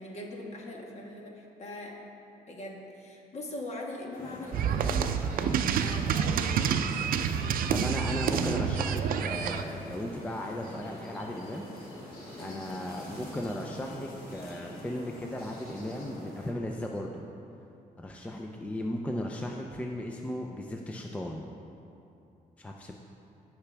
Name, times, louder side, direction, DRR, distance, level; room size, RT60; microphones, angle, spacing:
voice 1, 0.0-2.0 2.5-6.8 9.0-9.2 12.3-12.6, left 1 dB, 45° left, 0 dB, 1.5 m, -41 dB
sound 1, 4.1-16.5, left 1 dB, 90° left, 2.4 m, -45 dB
sound 2, 4.5-9.6, right 7 dB, 75° right, 0.5 m, -28 dB
voice 2, 7.7-11.7 12.4-17.2 18.0-21.4 22.6-22.9, left 1 dB, 10° left, 1 dB, 0.5 m, -36 dB
17.0 x 5.8 x 3.4 m, 2.7 s
cardioid pair, 140°, 15 cm